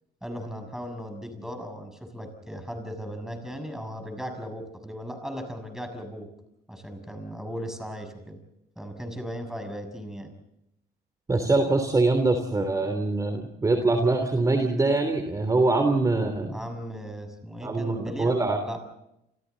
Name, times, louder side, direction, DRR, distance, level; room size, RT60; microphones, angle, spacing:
voice 1, 0.2-6.3 6.7-8.4 8.7-10.3 16.4-18.4 18.6-18.8, equal, 5° right, 6 dB, 6.7 m, -37 dB
voice 2, 11.3-16.6 17.6-18.6, right 2 dB, 20° right, 6 dB, 3.3 m, -23 dB
30.0 x 28.5 x 4.1 m, 0.84 s
cardioid pair, 110°, 17 cm